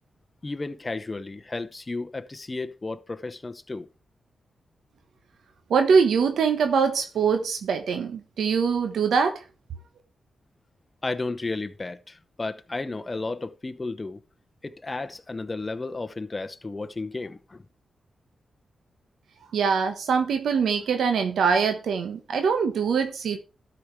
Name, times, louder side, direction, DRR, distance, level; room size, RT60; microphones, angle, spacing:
voice 1, 0.4-3.9 11.0-14.2 14.6-17.6, left 3 dB, 30° left, 0.9 m, -33 dB
voice 2, 5.7-9.4 19.5-23.4, right 6 dB, 85° right, 1.1 m, -23 dB
12.5 x 5.2 x 4.5 m
cardioid pair, 60°, 0 cm